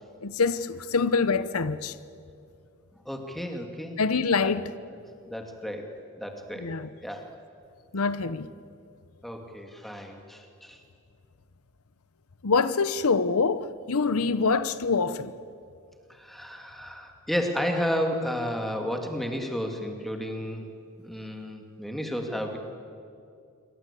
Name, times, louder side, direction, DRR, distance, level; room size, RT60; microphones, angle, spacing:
voice 1, 0.2-2.0 4.0-4.7 6.6-6.9 7.9-8.5 12.4-15.3, left 4 dB, 85° left, 0.8 m, -25 dB
voice 2, 3.1-4.0 4.4-4.5 5.3-6.7 7.0-7.3 9.2-10.8 16.1-20.6 21.0-22.6, equal, ahead, 2.4 m, -32 dB
27.0 x 23.5 x 8.4 m
head